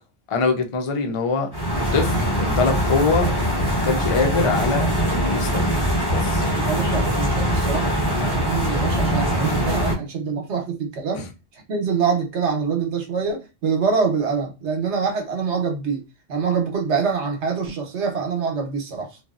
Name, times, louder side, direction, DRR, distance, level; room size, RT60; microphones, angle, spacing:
voice 1, 0.3-1.5 1.9-3.3 3.8-5.8 6.1-6.5, left 4 dB, 55° left, 0.3 m, -23 dB
sound 1, 1.5-9.9, equal, 20° left, 0.9 m, -22 dB
voice 2, 6.5-11.3 11.5-16.0 16.3-19.2, right 5 dB, 70° right, 1.1 m, -25 dB
2.7 x 2.2 x 2.4 m
omnidirectional pair, 1.3 m